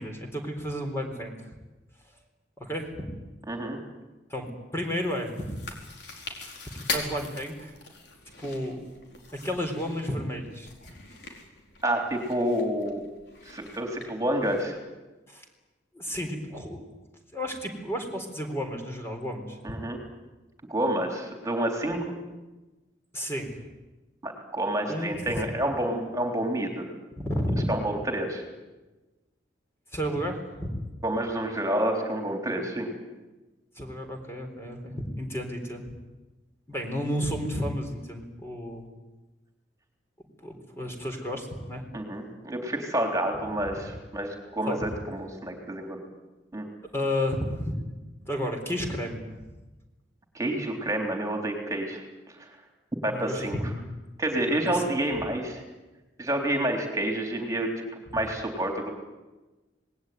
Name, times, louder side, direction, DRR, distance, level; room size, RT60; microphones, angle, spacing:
voice 1, 0.0-1.3 2.6-3.1 4.3-5.6 6.8-7.7 8.4-8.8 9.4-10.7 15.3-15.5 15.9-16.8 17.3-19.7 23.1-23.5 24.8-25.4 27.2-27.7 29.9-30.8 33.8-35.9 36.7-38.9 40.4-41.8 44.7-44.9 46.9-47.8 48.2-49.4 53.1-53.8 54.5-54.8, equal, 15° left, 3 dB, 4.0 m, -32 dB
voice 2, 3.5-3.8 11.8-13.0 13.5-14.8 19.6-20.0 20.7-22.1 24.2-26.8 27.7-28.4 31.0-32.9 41.9-46.0 46.5-46.6 50.3-52.0 52.4-52.5 53.0-53.6 54.2-55.6 56.2-58.9, right 1 dB, 20° right, 2 dB, 3.7 m, -29 dB
Chewing mastication, 4.9-14.6, left 3 dB, 65° left, 4.6 m, -41 dB
27.0 x 20.0 x 9.5 m, 1.1 s
head